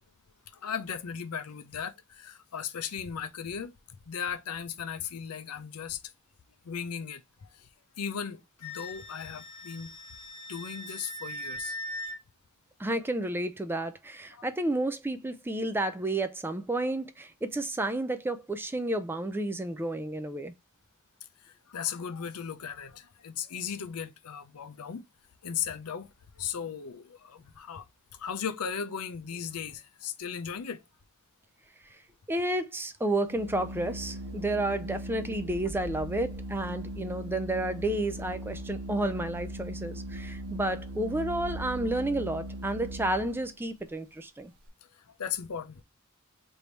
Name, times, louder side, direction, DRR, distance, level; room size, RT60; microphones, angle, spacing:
voice 1, 0.5-6.0 6.6-7.7 8.0-9.9 10.5-11.8 14.3-14.5 21.4-25.0 25.4-27.9 28.1-30.8 44.9-45.8, left 7 dB, 85° left, 0.6 m, -37 dB
Wind instrument woodwind instrument, 8.6-12.2, equal, 70° left, 1.4 m, -40 dB
voice 2, 12.8-20.5 32.3-44.5, right 1 dB, 10° right, 0.4 m, -31 dB
Organ, 33.2-43.5, right 1 dB, 70° right, 0.8 m, -39 dB
3.4 x 2.6 x 4.4 m
head